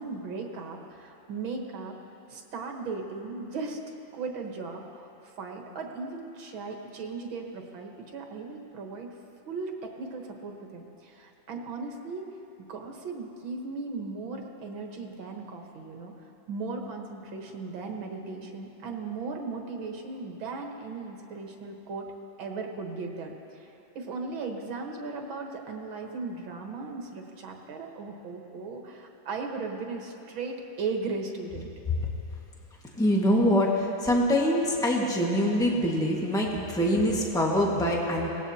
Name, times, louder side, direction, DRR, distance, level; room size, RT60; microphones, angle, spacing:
voice 1, 0.0-2.0 2.3-3.8 4.1-9.1 9.5-12.2 12.7-16.1 16.5-22.1 22.4-31.7, right 4 dB, 80° right, 2 dB, 2.2 m, -37 dB
voice 2, 33.0-38.3, equal, ahead, -3 dB, 1.5 m, -24 dB
24.0 x 18.0 x 2.9 m, 3.0 s
omnidirectional pair, 2.2 m